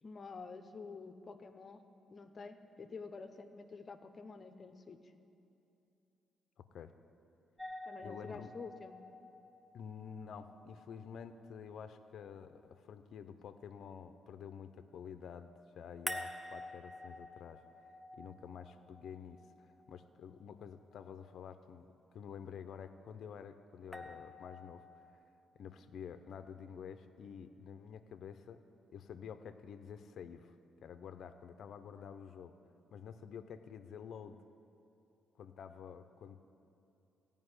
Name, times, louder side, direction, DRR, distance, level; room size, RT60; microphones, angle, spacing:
voice 1, 0.0-1.8 2.1-5.0 7.8-9.0 32.6-32.7, left 4 dB, 40° left, 9 dB, 0.9 m, -49 dB
voice 2, 6.6-6.9 8.0-8.5 9.7-17.6 18.1-25.2 25.5-28.6 28.9-32.5 32.9-34.4 35.4-36.5, left 7 dB, 65° left, 10 dB, 0.6 m, -49 dB
sound 1, 7.6-12.6 16.1-20.2 23.9-25.1, left 1 dB, ahead, 0.9 m, -49 dB
15.0 x 5.4 x 9.6 m, 2.8 s
cardioid pair, 90°, 0 cm